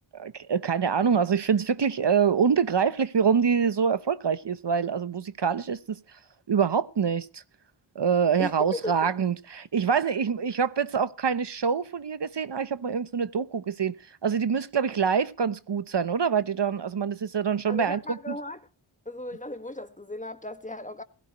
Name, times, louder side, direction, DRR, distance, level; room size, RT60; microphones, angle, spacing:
voice 1, 0.1-6.0 6.5-7.4 7.9-13.9 14.2-18.2, right 6 dB, 55° right, 1.0 m, -25 dB
voice 2, 8.4-9.1 17.7-18.6 19.0-21.0, left 1 dB, 15° left, 1.7 m, -36 dB
17.0 x 16.0 x 3.1 m
cardioid pair, 45°, 49 cm